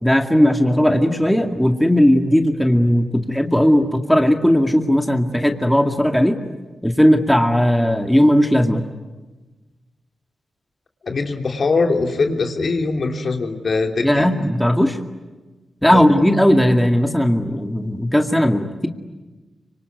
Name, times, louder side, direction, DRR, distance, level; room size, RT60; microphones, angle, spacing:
voice 1, 0.0-6.4 6.8-8.8 14.0-15.0 15.8-18.9, equal, 5° left, 4 dB, 2.2 m, -17 dB
voice 2, 11.0-14.3 15.9-16.0, left 3 dB, 60° left, 3 dB, 3.2 m, -21 dB
25.5 x 24.5 x 9.5 m, 1.2 s
cardioid pair, 65°, 0 cm